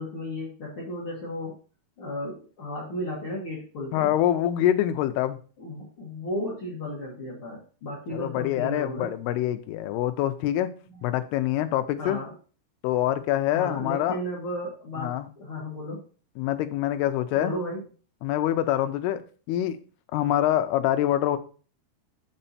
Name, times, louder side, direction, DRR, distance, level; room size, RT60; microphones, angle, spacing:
voice 1, 0.0-1.5 2.0-4.1 5.6-9.1 12.0-12.4 13.5-16.0 17.3-17.8, left 1 dB, 60° left, -4 dB, 1.3 m, -34 dB
voice 2, 3.9-5.4 8.1-10.7 11.0-12.2 12.8-14.2 15.0-15.3 16.4-17.5 18.2-19.2 19.5-19.8 20.1-21.4, left 12 dB, 85° left, 9 dB, 2.5 m, -25 dB
7.6 x 4.4 x 4.1 m, 0.38 s
omnidirectional pair, 4.8 m